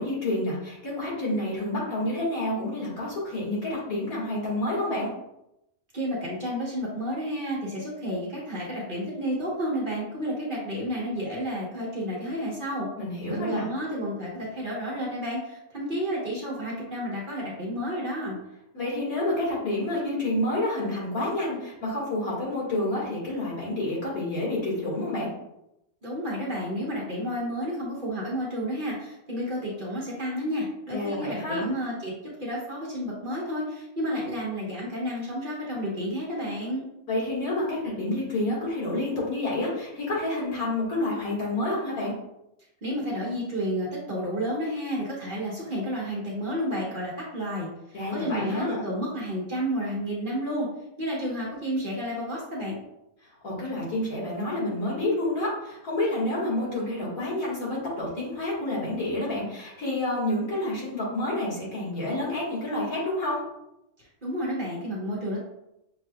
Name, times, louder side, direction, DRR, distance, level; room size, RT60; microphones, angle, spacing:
voice 1, 0.0-5.1 13.0-13.6 18.7-25.3 30.9-31.7 37.1-42.1 47.9-48.8 53.4-63.4, left 1 dB, 75° left, -6 dB, 2.2 m, -29 dB
voice 2, 5.9-12.9 13.2-18.4 26.0-32.1 32.4-36.8 42.8-50.7 51.0-52.8 64.2-65.4, equal, 40° right, -5 dB, 1.2 m, -31 dB
6.6 x 3.2 x 2.3 m, 0.86 s
omnidirectional pair, 1.5 m